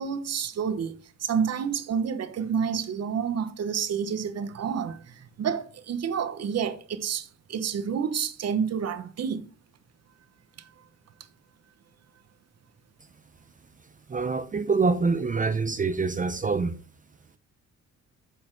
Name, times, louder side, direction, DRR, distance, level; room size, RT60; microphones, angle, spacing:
voice 1, 0.0-9.5 10.6-10.7, right 7 dB, 55° right, 1.2 m, -29 dB
voice 2, 14.1-16.8, right 4 dB, 25° right, 0.7 m, -25 dB
9.3 x 5.5 x 4.7 m
cardioid pair, 90°, 30 cm